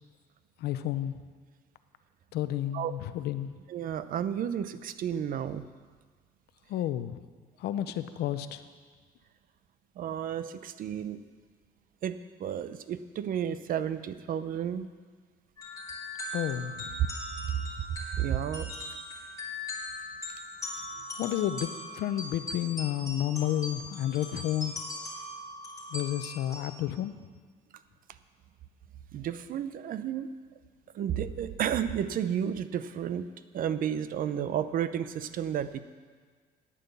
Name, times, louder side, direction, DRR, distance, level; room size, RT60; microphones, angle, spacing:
voice 1, 0.6-1.2 2.3-3.5 6.7-7.2 7.6-8.6 16.3-16.8 21.2-24.8 25.9-27.1, left 12 dB, 75° left, 11 dB, 0.7 m, -31 dB
voice 2, 3.7-5.6 10.0-11.2 12.0-14.9 17.5-17.6 17.9-18.7 29.1-30.3 30.9-33.3 33.5-35.8, right 9 dB, 55° right, 13 dB, 0.7 m, -32 dB
sound 1, 15.6-26.6, left 1 dB, 20° left, 3.2 m, -40 dB
10.0 x 9.2 x 6.9 m, 1.5 s
cardioid pair, 110°, 17 cm